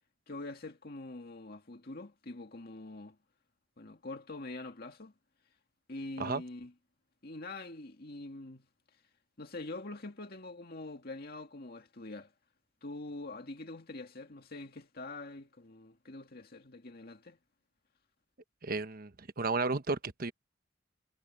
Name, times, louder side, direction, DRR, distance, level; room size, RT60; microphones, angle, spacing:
voice 1, 0.3-3.2 3.8-5.1 5.9-6.7 7.2-8.7 9.4-12.3 12.8-17.4, left 2 dB, 55° left, 2.1 m, -44 dB
voice 2, 18.6-20.3, right 3 dB, 50° right, 1.2 m, -33 dB
head